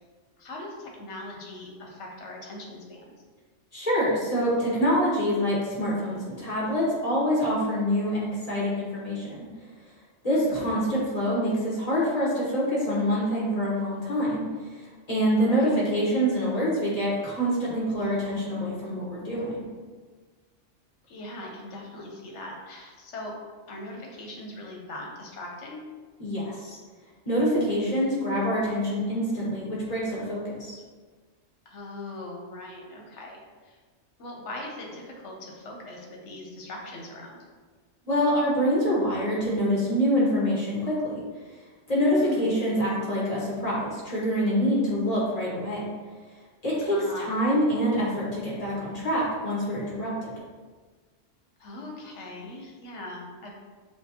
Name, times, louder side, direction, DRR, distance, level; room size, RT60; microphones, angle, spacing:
voice 1, 0.4-3.1 10.3-10.6 15.4-15.8 21.1-23.3 23.7-25.8 31.7-33.8 34.2-37.4 42.2-42.5 46.8-47.4 51.6-53.5, left 1 dB, 70° left, 0 dB, 1.1 m, -40 dB
voice 2, 3.7-9.5 10.2-14.4 15.1-19.6 26.2-26.8 27.2-30.8 38.0-41.2 41.9-45.9 46.6-50.3, equal, 35° left, -7 dB, 1.1 m, -26 dB
6.3 x 2.3 x 2.8 m, 1.4 s
omnidirectional pair, 1.3 m